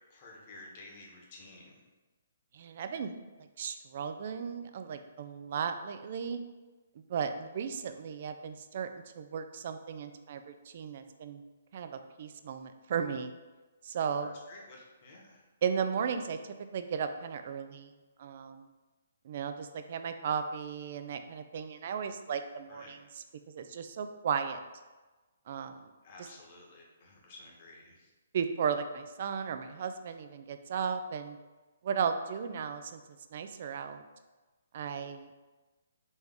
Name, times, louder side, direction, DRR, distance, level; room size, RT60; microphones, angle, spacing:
voice 1, 0.1-1.8 14.2-15.4 22.7-23.0 26.0-28.1, left 2 dB, 45° left, -1 dB, 1.1 m, -52 dB
voice 2, 2.5-3.1 3.6-6.4 7.1-8.9 9.2-11.4 11.7-13.3 13.8-14.3 15.6-16.4 16.7-17.9 18.2-18.7 19.2-23.0 23.5-24.6 25.5-25.9 28.3-31.4 31.8-33.0 33.3-34.0 34.7-35.4, right 7 dB, 50° right, 8 dB, 0.4 m, -35 dB
4.0 x 3.3 x 3.5 m, 1.2 s
hypercardioid pair, 135°, 0 cm